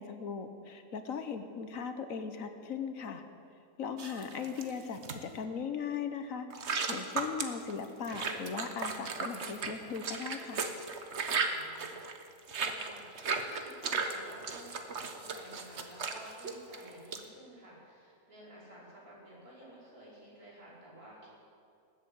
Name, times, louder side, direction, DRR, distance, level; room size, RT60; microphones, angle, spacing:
voice 1, 0.0-3.2 3.8-6.5 6.9-10.6, left 6 dB, 65° left, 8 dB, 1.4 m, -38 dB
sound 1, 4.0-5.2 6.5-17.2, right 5 dB, 50° right, 1.3 m, -36 dB
voice 2, 11.5-11.9 12.6-21.3, right 1 dB, 75° right, -6 dB, 5.5 m, -52 dB
20.0 x 8.4 x 8.4 m, 2.5 s
omnidirectional pair, 1.6 m